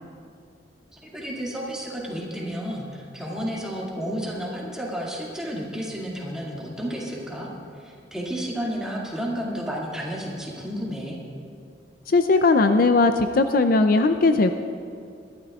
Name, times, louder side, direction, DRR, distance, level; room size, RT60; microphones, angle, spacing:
voice 1, 0.9-7.5 7.8-11.2, equal, 5° right, -4 dB, 2.2 m, -31 dB
voice 2, 12.1-14.5, left 3 dB, 55° left, 8 dB, 0.5 m, -18 dB
23.0 x 12.0 x 2.4 m, 2.4 s
head